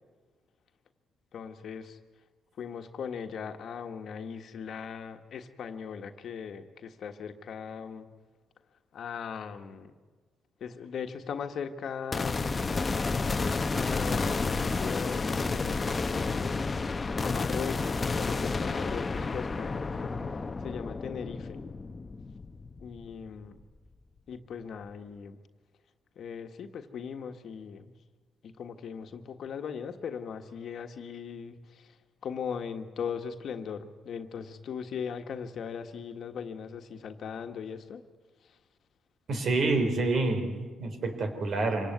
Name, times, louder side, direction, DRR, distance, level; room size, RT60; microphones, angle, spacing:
voice 1, 1.3-2.0 2.6-8.1 8.9-9.9 10.6-12.4 13.8-16.7 17.2-20.1 20.6-21.6 22.8-23.6 24.3-25.4 26.1-27.9 28.4-31.9 32.2-38.0, left 7 dB, 60° left, 6 dB, 1.6 m, -39 dB
sound 1, 12.1-23.5, left 4 dB, 30° left, 1.0 m, -31 dB
voice 2, 39.3-41.9, right 3 dB, 55° right, 7 dB, 3.5 m, -28 dB
25.5 x 17.5 x 9.4 m, 1.4 s
cardioid pair, 90°, 0 cm